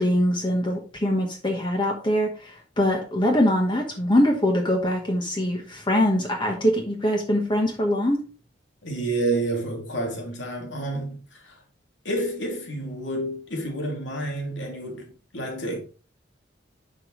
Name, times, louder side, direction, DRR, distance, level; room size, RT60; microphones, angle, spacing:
voice 1, 0.0-8.2, left 1 dB, 25° left, 1.3 m, -23 dB
voice 2, 8.8-11.6 12.0-15.8, right 2 dB, 80° left, 2.7 m, -29 dB
10.5 x 5.2 x 3.2 m
head